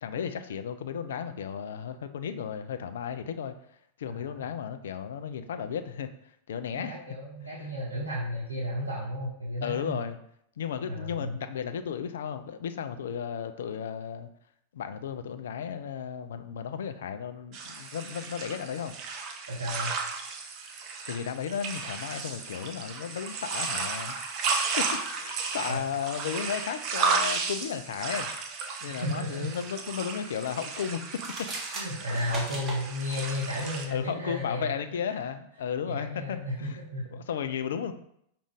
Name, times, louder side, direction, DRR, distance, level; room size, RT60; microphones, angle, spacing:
voice 1, 0.0-3.5 4.0-6.1 6.5-7.0 9.6-10.2 10.6-14.3 14.7-18.9 21.1-24.2 24.6-28.3 28.8-31.5 33.9-36.8 37.1-37.9, left 7 dB, 60° left, 10 dB, 0.3 m, -34 dB
voice 2, 4.1-4.4 6.7-10.0 10.9-11.4 19.5-19.9 25.7-25.8 29.0-29.5 31.7-34.7 35.1-35.2 35.8-37.2, left 1 dB, 80° right, -5 dB, 0.7 m, -33 dB
sound 1, 17.5-33.9, right 4 dB, 40° right, 0.5 m, -34 dB
sound 2, 31.1-32.8, right 2 dB, 20° right, 1.0 m, -38 dB
5.0 x 2.5 x 3.3 m, 0.73 s
figure-of-eight pair, 90°, 0 cm